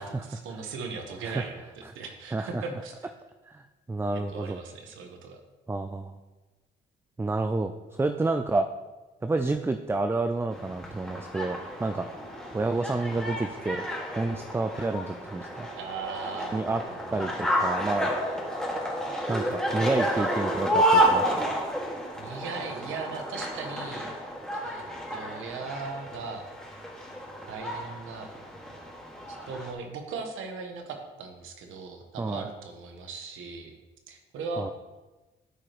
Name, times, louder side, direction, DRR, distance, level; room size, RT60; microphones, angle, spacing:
voice 1, 0.0-3.1 4.3-5.4 15.8-17.2 22.1-24.1 24.6-24.8 25.1-26.4 27.5-28.3 29.3-33.7 34.1-34.7, right 4 dB, 85° right, 4 dB, 1.1 m, -38 dB
voice 2, 2.3-2.6 3.5-4.6 5.7-6.1 7.2-8.7 9.2-12.1 12.5-13.8 14.2-15.7 16.5-16.8 17.1-18.1 19.3-21.4 32.2-32.4 34.6-34.7, right 3 dB, 10° right, 7 dB, 0.4 m, -29 dB
sound 1, 10.5-29.7, equal, 5° left, 1.8 m, -30 dB
12.5 x 4.9 x 3.0 m, 1.2 s
cardioid pair, 90°, 20 cm